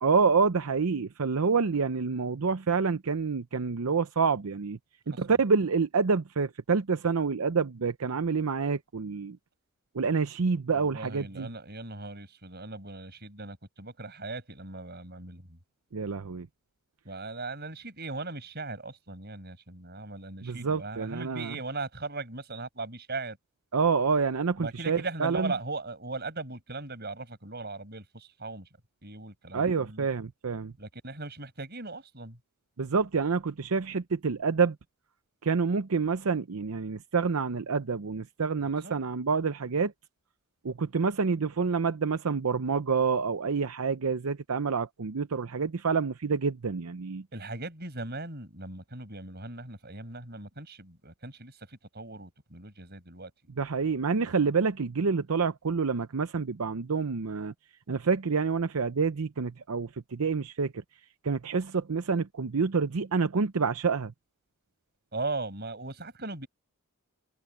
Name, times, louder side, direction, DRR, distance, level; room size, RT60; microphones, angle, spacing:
voice 1, 0.0-4.8 5.1-9.4 9.9-11.5 15.9-16.5 20.4-21.6 23.7-25.5 29.5-30.7 32.8-34.8 35.4-39.9 40.6-47.2 53.6-57.5 57.9-60.8 61.2-64.1, right 5 dB, 75° right, 0.7 m, -27 dB
voice 2, 10.7-15.6 17.0-23.4 24.6-28.7 29.0-30.1 30.8-32.4 38.8-39.0 47.3-53.3 65.1-66.5, right 3 dB, 45° right, 7.0 m, -38 dB
head